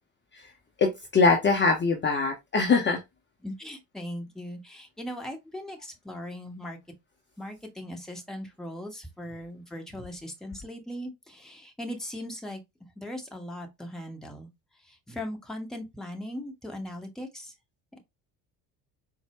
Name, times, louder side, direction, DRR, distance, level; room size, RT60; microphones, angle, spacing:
voice 1, 0.8-3.0, left 4 dB, 25° left, 0.7 m, -23 dB
voice 2, 3.4-6.8 7.4-12.6 13.0-14.5 15.1-17.5, left 1 dB, ahead, 1.0 m, -39 dB
4.2 x 2.0 x 2.9 m
hypercardioid pair, 60°, 48 cm